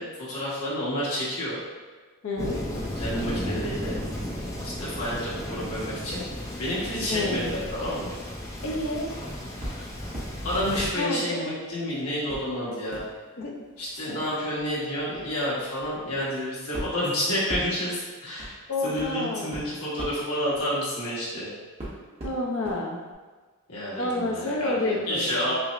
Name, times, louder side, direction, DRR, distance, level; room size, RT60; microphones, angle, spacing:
voice 1, 0.0-1.6 3.0-4.0 4.6-6.2 6.6-8.2 10.4-13.0 13.8-18.6 18.8-21.5 23.7-25.5, equal, 90° left, -8 dB, 1.3 m, -30 dB
voice 2, 2.2-2.7 7.1-7.5 8.6-9.2 10.9-11.5 13.4-13.7 18.7-19.5 22.2-23.0 24.0-25.5, left 2 dB, 65° left, -1 dB, 0.6 m, -29 dB
Thunder, 2.4-10.9, left 1 dB, 15° left, 0.5 m, -34 dB
sound 1, 9.6-10.4 10.8-11.8 12.3-21.4 21.8-22.8 23.1-23.2, right 1 dB, 30° right, 0.8 m, -40 dB
5.6 x 2.0 x 2.5 m, 1.4 s
head